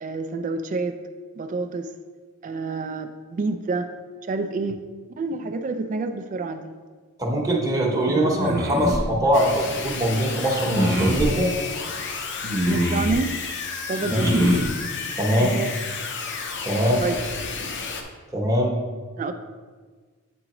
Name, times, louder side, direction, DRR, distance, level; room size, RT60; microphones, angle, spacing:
voice 1, 0.0-1.0 1.4-1.9 2.4-3.9 4.3-4.8 5.2-6.7 8.1-8.7 12.7-13.3 13.9-14.5 15.4-15.7 16.9-17.2 19.2-19.3, right 3 dB, 35° right, 8 dB, 0.3 m, -28 dB
voice 2, 7.2-11.5 14.0-14.5 15.2-15.5 16.6-17.1 18.3-18.8, equal, 15° right, -3 dB, 0.9 m, -22 dB
sound 1, 8.3-9.0 10.6-11.3 12.4-13.2 14.1-14.7, equal, 50° right, 0.8 m, -23 dB
sound 2, 9.3-18.0, left 4 dB, 55° left, 0.6 m, -32 dB
7.9 x 4.8 x 3.0 m, 1.5 s
head